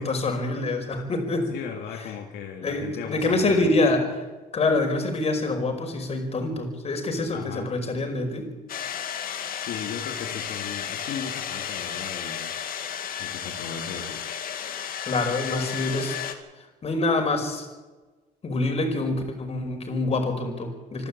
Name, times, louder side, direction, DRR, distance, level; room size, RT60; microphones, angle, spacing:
voice 1, 0.0-1.5 2.6-4.0 4.5-8.5 15.0-16.2 16.6-17.7 18.4-21.1, left 2 dB, 35° left, 4 dB, 5.4 m, -26 dB
voice 2, 1.5-3.7 7.3-7.7 9.6-12.6 13.2-14.3, left 7 dB, 80° left, 1 dB, 2.4 m, -36 dB
sound 1, 8.7-16.3, left 9 dB, 60° left, 2.4 m, -33 dB
26.0 x 12.0 x 8.7 m, 1.2 s
cardioid pair, 110°, 17 cm